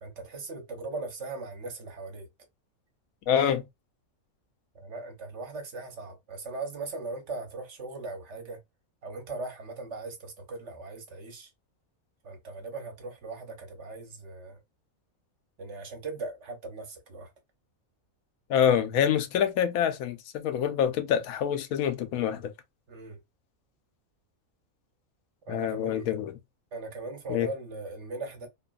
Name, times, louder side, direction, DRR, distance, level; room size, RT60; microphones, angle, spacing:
voice 1, 0.0-2.3 4.7-8.6 9.0-11.5 12.2-14.6 15.6-17.3 22.9-23.2 25.5-26.1 26.7-28.5, right 3 dB, 60° right, 1.1 m, -39 dB
voice 2, 3.3-3.7 18.5-22.5 25.5-26.3 27.3-27.5, left 9 dB, 85° left, 1.0 m, -26 dB
2.8 x 2.4 x 2.3 m
omnidirectional pair, 1.4 m